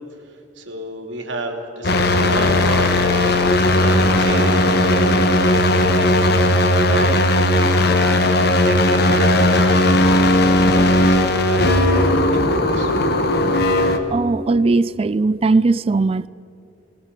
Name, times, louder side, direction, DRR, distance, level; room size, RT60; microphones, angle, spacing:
voice 1, 0.6-3.0 3.8-7.2 8.1-10.7 11.2-12.0 12.3-12.9, right 2 dB, 85° right, 2.7 m, -31 dB
sound 1, 1.8-14.0, left 1 dB, 60° left, 1.4 m, -16 dB
voice 2, 14.1-16.3, right 3 dB, 30° right, 0.3 m, -18 dB
21.5 x 18.0 x 6.7 m
head